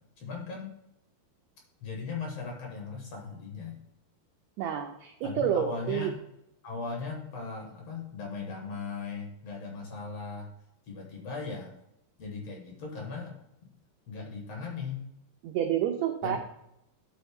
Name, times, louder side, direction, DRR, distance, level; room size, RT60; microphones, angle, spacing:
voice 1, 0.2-0.7 1.8-3.8 5.2-6.2 6.6-10.5 10.9-11.7 12.2-13.4 14.1-15.0 16.2-16.4, left 4 dB, 60° left, 0 dB, 2.0 m, -38 dB
voice 2, 4.6-6.1 15.4-16.4, right 9 dB, 85° right, 3 dB, 1.5 m, -29 dB
11.0 x 3.8 x 3.6 m, 0.83 s
omnidirectional pair, 3.8 m